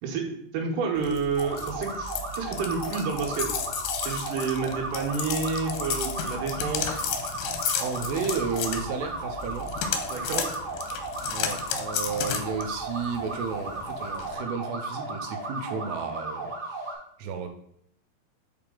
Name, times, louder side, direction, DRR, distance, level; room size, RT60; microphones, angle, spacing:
voice 1, 0.0-3.5 4.0-7.0 10.1-10.6, right 5 dB, 70° right, 0 dB, 2.3 m, -30 dB
sound 1, 1.0-14.3, left 7 dB, 80° left, 2.4 m, -33 dB
sound 2, 1.3-16.9, right 2 dB, 25° right, 2.2 m, -35 dB
voice 2, 7.8-9.7 11.3-17.5, right 5 dB, 85° right, 5 dB, 2.7 m, -33 dB
6.6 x 4.4 x 3.8 m, 0.70 s
omnidirectional pair, 4.8 m